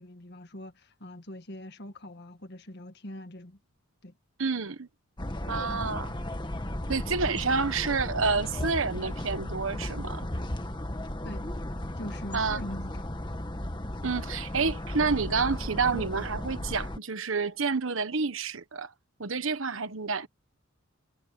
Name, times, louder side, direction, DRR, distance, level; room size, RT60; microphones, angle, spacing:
voice 1, 0.0-3.6 4.0-4.1 11.2-11.5 12.0-13.1, left 1 dB, 55° left, 1.8 m, -42 dB
voice 2, 4.4-4.9 5.5-6.1 6.9-10.3 12.3-12.6 14.0-18.9 19.2-20.3, right 4 dB, 70° right, 1.3 m, -29 dB
sound 1, 5.2-17.0, left 1 dB, 20° left, 1.5 m, -35 dB
head